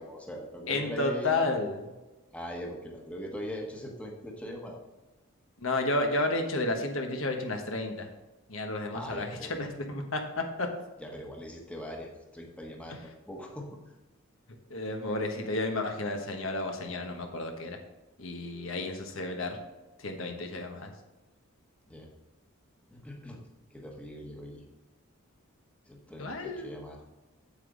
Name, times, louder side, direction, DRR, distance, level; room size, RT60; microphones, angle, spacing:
voice 1, 0.0-1.4 2.3-4.8 8.9-9.6 11.0-13.8 21.9-22.1 22.9-23.4 23.7-24.6 25.9-27.0, equal, 5° left, 0 dB, 1.2 m, -41 dB
voice 2, 0.7-1.9 5.6-8.1 8.5-10.7 14.7-17.8 18.2-19.6 20.0-20.9 26.2-26.8, left 2 dB, 70° left, 3 dB, 1.2 m, -32 dB
8.7 x 8.0 x 3.9 m, 1.1 s
head